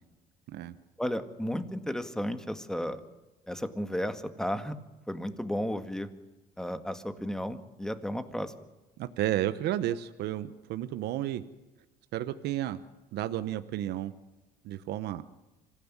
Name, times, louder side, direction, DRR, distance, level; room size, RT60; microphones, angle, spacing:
voice 1, 1.0-3.0 3.5-4.7 5.1-6.1 6.6-8.5, equal, 5° left, 8 dB, 2.0 m, -33 dB
voice 2, 9.0-11.4 12.1-12.8 13.1-14.1 14.6-15.2, right 13 dB, 80° right, 11 dB, 1.0 m, -32 dB
26.0 x 16.0 x 9.8 m, 1.1 s
cardioid pair, 110°, 17 cm